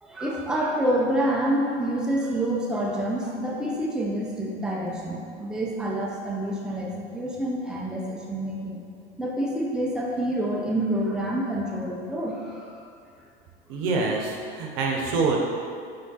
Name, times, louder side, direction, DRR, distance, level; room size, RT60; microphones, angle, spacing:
voice 1, 0.0-8.8 9.2-12.8, right 1 dB, ahead, -3 dB, 0.6 m, -27 dB
voice 2, 13.7-15.4, right 4 dB, 65° right, 0 dB, 0.8 m, -25 dB
3.5 x 3.5 x 4.1 m, 2.3 s
hypercardioid pair, 90°, 30 cm